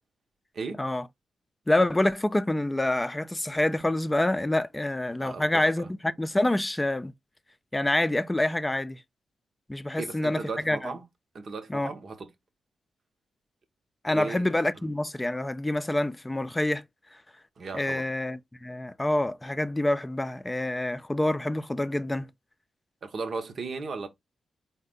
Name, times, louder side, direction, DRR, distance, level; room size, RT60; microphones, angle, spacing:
voice 1, 1.7-7.1 7.7-9.0 9.7-10.9 11.7-11.9 14.0-16.8 17.7-22.3, left 1 dB, 20° left, 0.5 m, -27 dB
voice 2, 5.2-5.9 9.9-11.0 11.3-12.3 14.1-14.5 17.6-18.0 23.0-24.1, right 4 dB, 60° right, 0.9 m, -36 dB
4.1 x 2.2 x 3.7 m
hypercardioid pair, 40°, 0 cm